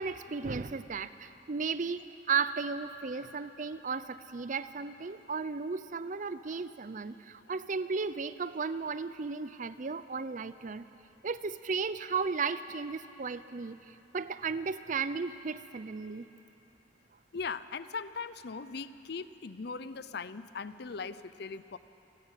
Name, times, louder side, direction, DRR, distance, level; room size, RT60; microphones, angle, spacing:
voice 1, 0.0-10.8 11.2-13.8 14.1-16.2, right 5 dB, 45° right, 14 dB, 0.5 m, -35 dB
voice 2, 17.3-21.8, left 5 dB, 60° left, 14 dB, 0.6 m, -39 dB
28.5 x 11.5 x 8.2 m, 2.9 s
head